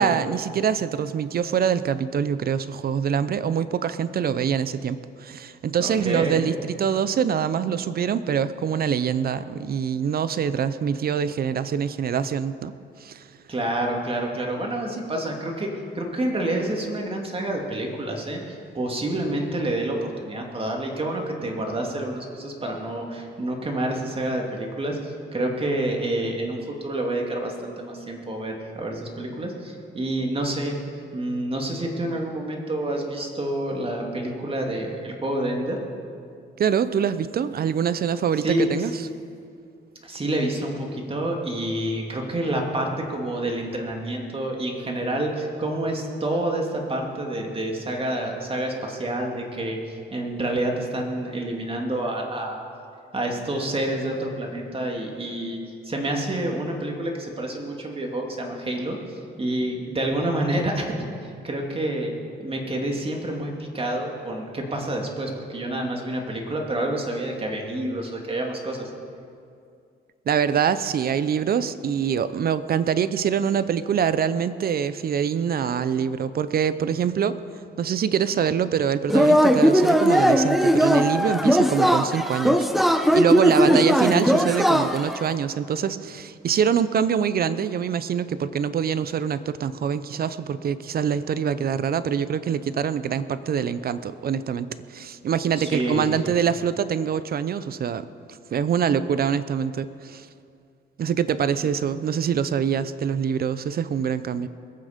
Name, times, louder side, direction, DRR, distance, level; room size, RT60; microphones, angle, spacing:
voice 1, 0.0-12.7 13.0-13.2 36.6-38.9 70.3-77.4 77.8-82.7 83.1-98.1 98.5-100.3 101.0-104.5, right 7 dB, 50° right, 14 dB, 0.6 m, -24 dB
voice 2, 5.8-6.4 13.5-15.7 15.9-30.8 31.1-35.8 38.4-38.9 40.0-52.6 53.1-55.6 55.8-60.9 61.2-62.1 62.4-68.9 83.6-83.8 95.6-96.3, right 1 dB, 30° right, 1 dB, 2.4 m, -28 dB
Yell / Cheering, 79.1-85.2, equal, ahead, 0.7 m, -19 dB
21.0 x 8.7 x 5.1 m, 2.4 s
cardioid pair, 90°, 20 cm